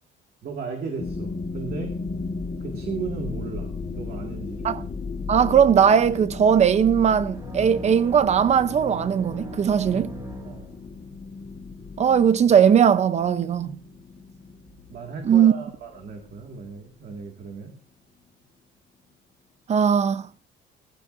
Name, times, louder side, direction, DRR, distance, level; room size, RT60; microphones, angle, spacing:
voice 1, 0.4-1.9 2.6-4.7 9.8-10.0 10.4-10.7 14.9-17.7, right 5 dB, 45° right, 2.0 m, -36 dB
sound 1, 1.0-16.9, left 4 dB, 30° left, 1.5 m, -36 dB
voice 2, 5.3-10.1 12.0-13.8 15.3-15.5 19.7-20.3, right 8 dB, 30° right, 0.7 m, -19 dB
sound 2, 7.3-11.2, right 2 dB, 15° right, 1.6 m, -39 dB
19.0 x 15.0 x 2.6 m
cardioid pair, 165°, 21 cm